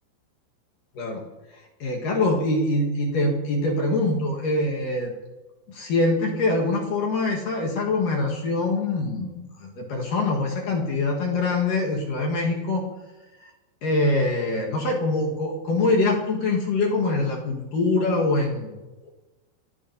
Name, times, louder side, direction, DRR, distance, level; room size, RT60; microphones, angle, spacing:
voice 1, 1.8-5.1 5.7-12.8 13.8-18.8, left 2 dB, 60° left, -1 dB, 2.4 m, -24 dB
29.5 x 15.0 x 2.8 m, 1.2 s
omnidirectional pair, 5.8 m